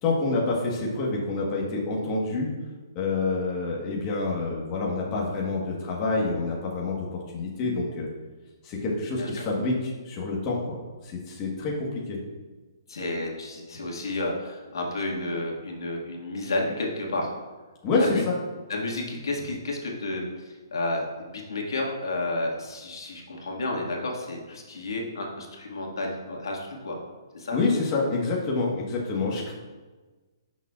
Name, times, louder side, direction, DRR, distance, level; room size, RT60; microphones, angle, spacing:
voice 1, 0.0-2.5 2.9-8.1 8.6-10.8 11.0-12.2 17.8-18.3 27.5-29.5, left 3 dB, 25° left, -3 dB, 1.3 m, -27 dB
voice 2, 12.9-17.3 18.0-18.2 18.7-27.0 27.3-27.6, left 2 dB, 80° left, -1 dB, 1.8 m, -31 dB
10.5 x 6.3 x 2.4 m, 1.3 s
hypercardioid pair, 160°, 2 cm